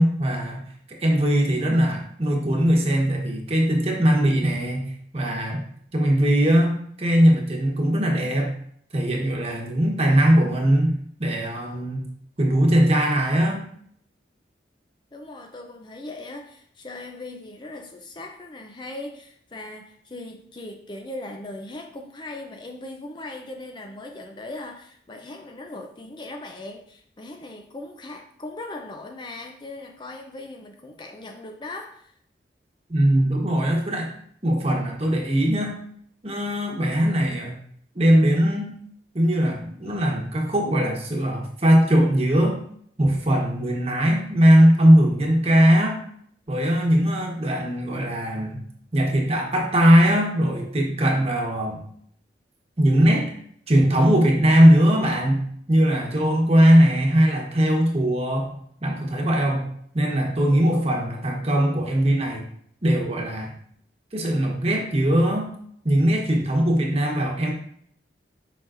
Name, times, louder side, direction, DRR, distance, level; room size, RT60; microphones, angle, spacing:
voice 1, 0.0-5.6 5.9-8.5 8.9-10.9 11.2-12.1 12.4-13.6 32.9-34.1 34.4-35.8 36.2-37.6 37.9-38.7 39.1-42.6 43.0-46.0 46.5-48.6 48.9-51.8 52.8-53.3 53.7-62.4 62.8-63.5 64.1-65.5 65.8-67.5, equal, 35° right, 0 dB, 1.2 m, -20 dB
voice 2, 15.1-32.1 60.5-61.1, left 2 dB, 25° left, 3 dB, 0.5 m, -39 dB
7.5 x 5.4 x 2.6 m, 0.64 s
head